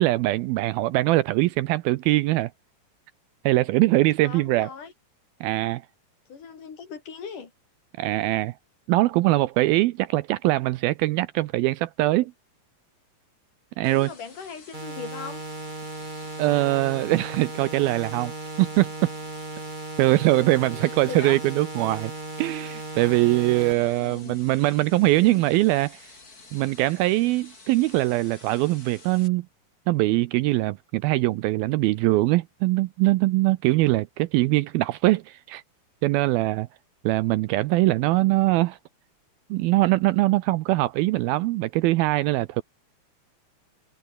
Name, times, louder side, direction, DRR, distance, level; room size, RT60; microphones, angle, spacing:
voice 1, 0.0-2.5 3.4-4.7 5.4-5.8 8.0-8.5 8.9-12.3 13.8-14.1 16.4-19.1 20.0-22.1 22.4-26.1 26.5-29.5 29.9-35.6 36.0-36.7 37.0-38.8 39.5-42.6, right 18 dB, 80° right, 2.3 m, -22 dB
voice 2, 4.2-4.9 6.3-7.5 13.9-15.4 20.2-20.4 20.7-21.4 23.6-24.4, left 6 dB, 50° left, 4.8 m, -39 dB
sound 1, 13.8-29.3, left 3 dB, 20° left, 4.0 m, -50 dB
sound 2, 14.7-23.7, right 2 dB, 15° right, 2.1 m, -36 dB
omnidirectional pair, 4.7 m